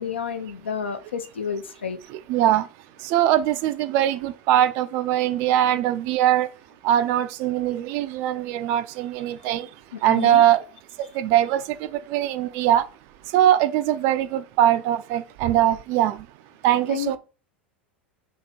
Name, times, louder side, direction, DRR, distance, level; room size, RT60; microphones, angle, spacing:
voice 1, 0.0-2.0 10.1-10.5 16.9-17.2, left 7 dB, 75° left, 0.5 m, -30 dB
voice 2, 2.1-2.7 3.0-6.5 6.8-9.7 10.0-10.6 11.0-12.9 13.2-16.3 16.6-17.2, right 12 dB, 50° right, 0.3 m, -21 dB
2.9 x 2.8 x 4.1 m
figure-of-eight pair, 80°, 6 cm